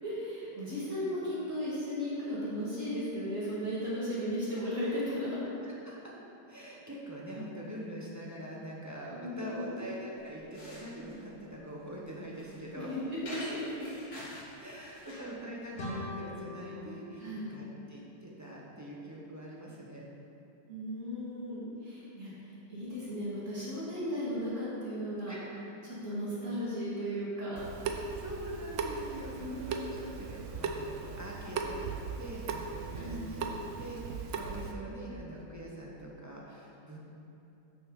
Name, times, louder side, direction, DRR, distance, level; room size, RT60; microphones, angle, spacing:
voice 1, 0.0-5.4 9.1-9.8 12.8-13.9 17.2-17.6 20.7-22.3 22.7-25.3 25.8-27.6 29.4-29.6 30.0-30.1 32.9-33.3, equal, 50° right, -9 dB, 2.4 m, -36 dB
voice 2, 5.6-6.1 6.5-12.9 14.6-20.1 25.3-25.4 28.1-33.5 33.8-37.0, right 1 dB, 15° right, -5 dB, 0.8 m, -44 dB
sound 1, 10.2-15.3, left 1 dB, 85° left, 2.6 m, -48 dB
sound 2, 15.8-18.5, left 1 dB, 45° left, 1.1 m, -43 dB
Water tap faucet / Sink (filling or washing) / Drip, 27.6-34.7, right 5 dB, 65° right, 0.8 m, -38 dB
9.5 x 6.1 x 3.8 m, 2.8 s
omnidirectional pair, 1.8 m